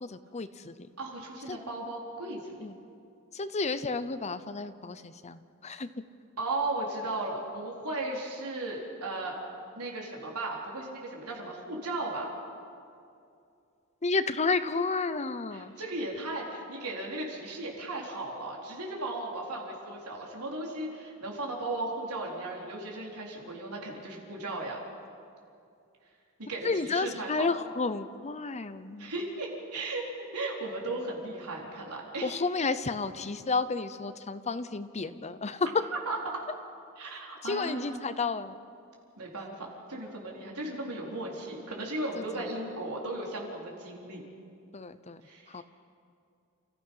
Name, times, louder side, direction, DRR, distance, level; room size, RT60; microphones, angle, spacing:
voice 1, 0.0-0.9 1.5-1.6 2.6-2.8 3.3-5.9 14.0-15.8 26.6-29.1 32.2-35.8 37.4-38.6 42.2-42.5 44.7-45.2 45.5-45.6, left 4 dB, 30° left, 12 dB, 0.7 m, -31 dB
voice 2, 1.0-2.4 6.4-9.4 9.7-12.3 15.5-24.8 26.4-27.5 29.0-30.0 30.3-32.3 36.1-36.4 37.0-38.1 39.2-44.2 45.2-45.6, right 2 dB, 85° right, -2 dB, 4.3 m, -36 dB
29.5 x 15.5 x 5.6 m, 2.5 s
head